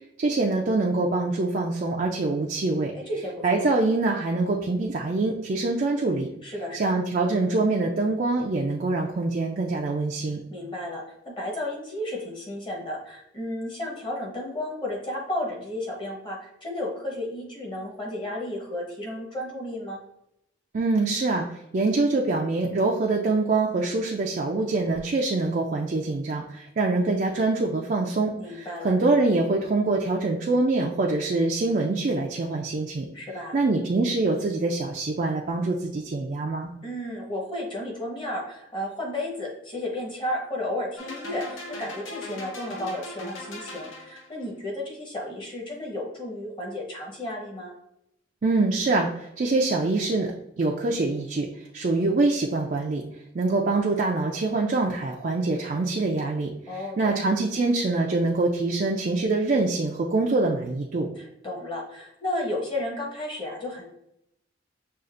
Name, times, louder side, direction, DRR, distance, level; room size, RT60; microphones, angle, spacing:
voice 1, 0.2-2.9 3.4-6.3 6.7-10.4 20.7-21.5 21.7-33.1 33.5-36.7 48.4-53.0 53.3-61.1, right 3 dB, 40° right, 0 dB, 0.4 m, -25 dB
voice 2, 3.1-3.6 6.4-6.9 10.5-20.0 28.3-28.9 33.1-33.6 36.8-47.7 56.7-57.2 61.1-63.8, left 1 dB, 25° left, -2 dB, 1.0 m, -33 dB
sound 1, 41.0-44.4, left 2 dB, 75° left, 0.8 m, -39 dB
6.4 x 2.4 x 2.5 m, 0.81 s
head